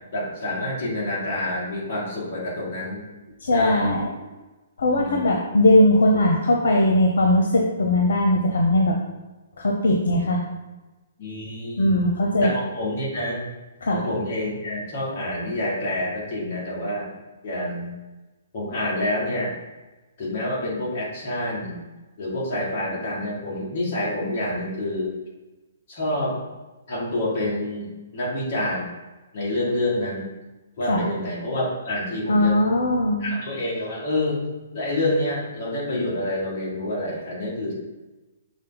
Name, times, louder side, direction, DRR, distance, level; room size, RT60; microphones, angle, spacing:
voice 1, 0.1-3.0 3.5-3.9 4.9-5.3 11.2-12.0 12.4-13.4 13.9-17.1 17.4-17.9 18.5-19.5 20.2-21.8 22.2-25.1 25.9-26.4 26.9-28.8 29.3-30.3 30.8-32.6 33.2-34.4 34.7-37.7, left 1 dB, 30° left, -6 dB, 2.0 m, -27 dB
voice 2, 3.4-4.1 4.8-8.9 9.6-10.4 11.8-12.5 13.8-14.0 30.9-31.0 32.3-33.3, left 1 dB, 85° left, 0 dB, 0.9 m, -19 dB
6.4 x 3.6 x 4.0 m, 1.1 s
hypercardioid pair, 170°, 0 cm